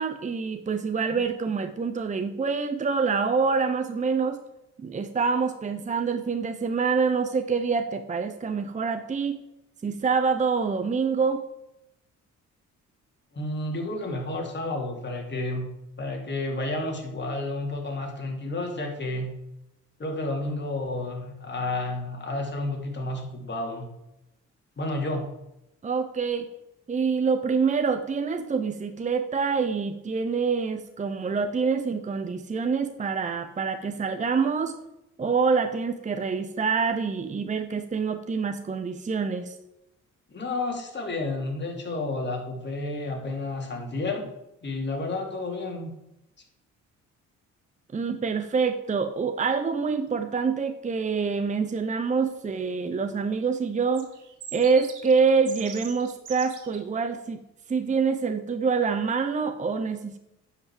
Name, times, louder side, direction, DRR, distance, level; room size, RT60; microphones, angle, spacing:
voice 1, 0.0-4.4 4.8-9.4 9.8-11.4 25.8-26.5 26.9-34.8 35.2-39.6 47.9-54.1 54.5-57.4 57.7-60.2, right 5 dB, 25° right, 8 dB, 0.8 m, -26 dB
voice 2, 13.3-15.7 16.0-19.3 20.0-23.9 24.8-25.3 40.3-44.2 44.6-45.9, left 2 dB, 35° left, 1 dB, 3.2 m, -31 dB
sound 1, 53.9-56.8, right 8 dB, 75° right, 2.2 m, -42 dB
10.0 x 5.9 x 7.5 m, 0.88 s
cardioid pair, 90°, 30 cm